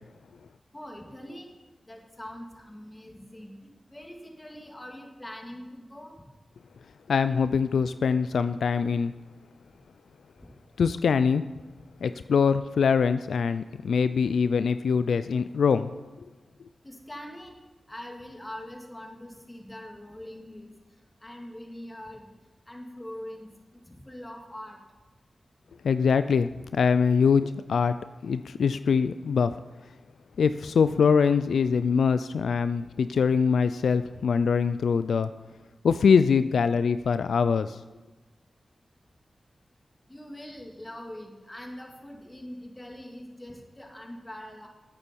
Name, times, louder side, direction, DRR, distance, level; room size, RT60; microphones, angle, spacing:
voice 1, 0.7-1.5 1.9-6.1 10.4-10.5 16.8-17.6 17.9-20.7 21.2-22.3 22.7-23.5 23.9-24.8 29.7-29.8 40.1-44.7, left 1 dB, 20° left, 0 dB, 2.6 m, -43 dB
voice 2, 7.1-9.1 10.8-11.5 12.0-15.9 25.8-28.0 28.2-29.6 30.4-35.3 35.8-37.8, left 6 dB, 85° left, 12 dB, 0.3 m, -23 dB
14.0 x 8.5 x 4.6 m, 1.2 s
cardioid pair, 50°, 0 cm